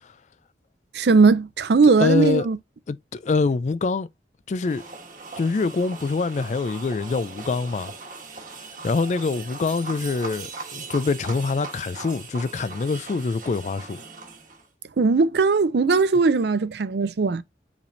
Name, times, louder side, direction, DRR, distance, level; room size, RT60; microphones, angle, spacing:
voice 1, 0.9-2.6 15.0-17.4, right 4 dB, 65° right, 0.5 m, -19 dB
voice 2, 2.0-2.5 2.9-4.1 4.5-4.8 5.4-7.9 8.8-14.0, left 4 dB, 40° left, 0.3 m, -25 dB
sound 1, 4.6-14.7, right 4 dB, 45° right, 1.2 m, -39 dB
5.1 x 3.4 x 2.6 m
head